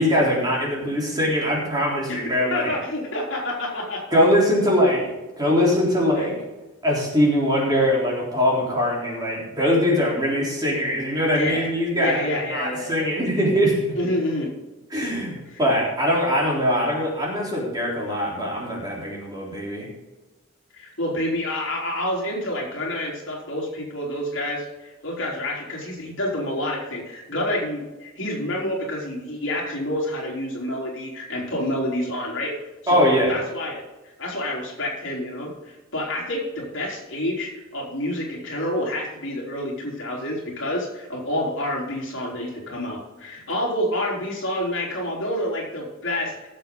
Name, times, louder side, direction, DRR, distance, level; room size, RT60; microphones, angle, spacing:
voice 1, 0.0-2.7 4.1-5.0 5.4-6.4 6.8-13.8 14.9-19.9 32.9-33.4, equal, 20° right, -4 dB, 3.7 m, -22 dB
voice 2, 2.1-4.2 11.3-11.7 12.0-13.1 14.0-14.5 15.5-15.6 20.7-32.6 32.8-46.5, left 1 dB, 60° left, -2 dB, 3.8 m, -28 dB
18.0 x 7.5 x 3.9 m, 1.1 s
head